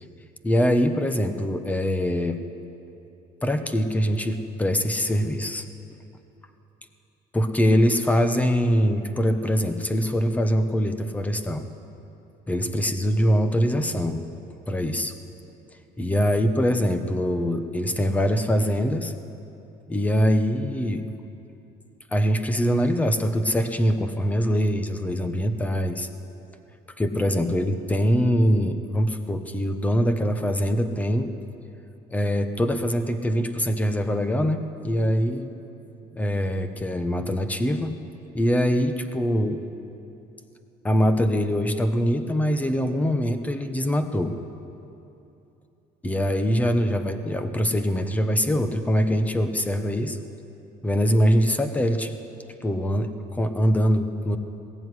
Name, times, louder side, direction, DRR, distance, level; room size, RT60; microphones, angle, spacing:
voice 1, 0.4-2.4 3.4-5.7 7.3-11.7 12.5-14.3 14.7-15.1 16.0-19.1 19.9-21.1 22.1-26.1 27.0-31.3 32.1-35.5 36.1-38.0 38.3-39.6 40.8-44.4 46.0-50.2 50.8-52.1 52.6-54.4, equal, 10° left, 8 dB, 1.1 m, -23 dB
20.5 x 15.5 x 9.7 m, 2.9 s
cardioid pair, 155°, 16 cm